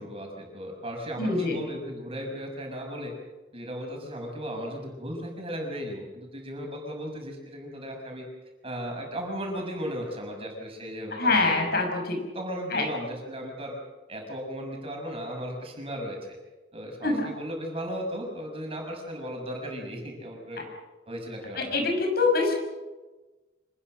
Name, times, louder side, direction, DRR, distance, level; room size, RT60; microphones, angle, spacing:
voice 1, 0.0-3.1 3.5-8.2 8.6-11.6 12.3-13.8 14.1-16.2 16.7-20.6 21.1-21.8, equal, 30° right, 1 dB, 6.3 m, -36 dB
voice 2, 1.2-1.6 11.2-12.2 12.7-12.9 17.0-17.3 21.6-22.5, left 3 dB, 60° left, 2 dB, 6.2 m, -24 dB
26.0 x 20.5 x 6.4 m, 1.2 s
head